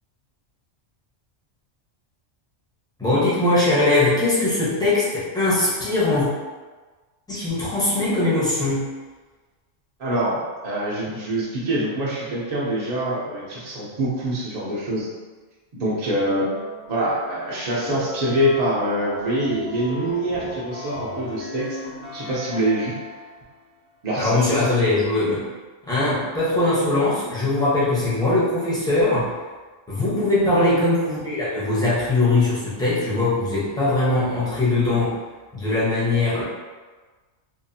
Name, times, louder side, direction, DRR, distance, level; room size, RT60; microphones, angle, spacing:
voice 1, 3.0-6.3 7.3-8.9 24.2-25.5 25.9-29.3 29.9-35.1 35.5-36.4, left 2 dB, 5° left, -9 dB, 0.6 m, -21 dB
voice 2, 10.0-15.1 15.7-16.5 16.9-21.8 22.1-23.0 24.0-24.7 30.5-30.8, right 1 dB, 50° right, -6 dB, 0.5 m, -25 dB
sound 1, 16.2-23.5, left 2 dB, 65° left, 0.8 m, -37 dB
2.7 x 2.4 x 2.7 m, 1.3 s
omnidirectional pair, 1.3 m